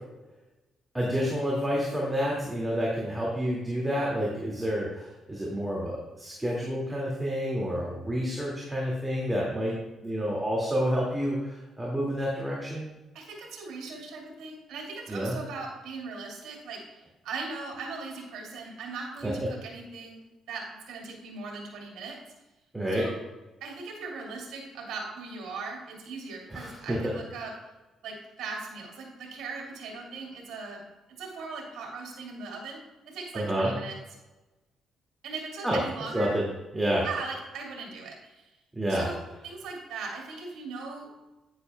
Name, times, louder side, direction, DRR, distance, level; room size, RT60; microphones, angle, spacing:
voice 1, 0.9-9.7 10.0-12.8 15.1-15.3 19.2-19.3 22.7-23.0 26.5-27.0 33.3-33.7 35.6-35.8 36.1-36.4 36.7-37.0 38.8-39.1, equal, 10° right, -4 dB, 2.2 m, -29 dB
voice 2, 13.1-16.8 17.2-20.2 20.5-22.2 22.9-23.1 23.6-27.5 28.0-30.8 31.2-32.8 33.1-34.0 35.2-36.4 37.0-38.4 38.9-41.2, right 4 dB, 85° right, 0 dB, 2.7 m, -39 dB
10.5 x 9.9 x 2.3 m, 1.1 s
cardioid pair, 90°, 0 cm